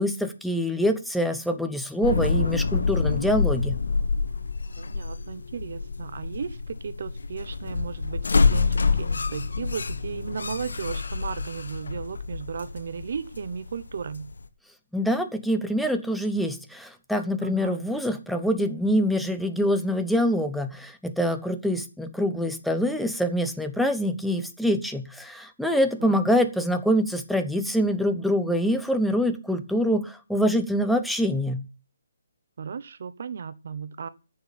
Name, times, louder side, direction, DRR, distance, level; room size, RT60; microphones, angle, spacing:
voice 1, 0.0-3.8 14.9-31.6, equal, ahead, 6 dB, 0.9 m, -25 dB
sound 1, 2.0-14.5, left 4 dB, 80° left, 1.4 m, -27 dB
voice 2, 4.8-14.3 17.4-17.8 26.0-26.2 32.6-34.1, right 6 dB, 55° right, 14 dB, 0.9 m, -35 dB
9.6 x 6.9 x 8.7 m, 0.33 s
hypercardioid pair, 160°, 0 cm